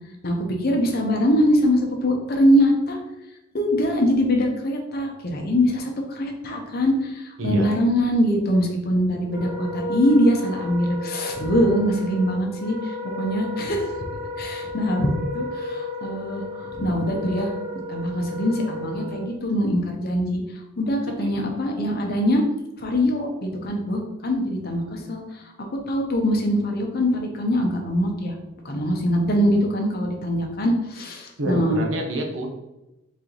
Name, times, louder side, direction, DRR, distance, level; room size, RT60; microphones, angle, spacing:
voice 1, 0.2-3.0 3.5-13.9 14.4-17.5 17.9-20.4 20.8-22.4 22.8-25.4 25.9-28.4 28.6-31.8, equal, 45° left, 2 dB, 0.7 m, -23 dB
Wind instrument woodwind instrument, 9.2-19.3, left 2 dB, 15° right, 0.9 m, -33 dB
voice 2, 21.1-21.5 31.4-32.5, equal, 70° right, 2 dB, 0.9 m, -27 dB
4.1 x 3.0 x 3.9 m, 0.95 s
head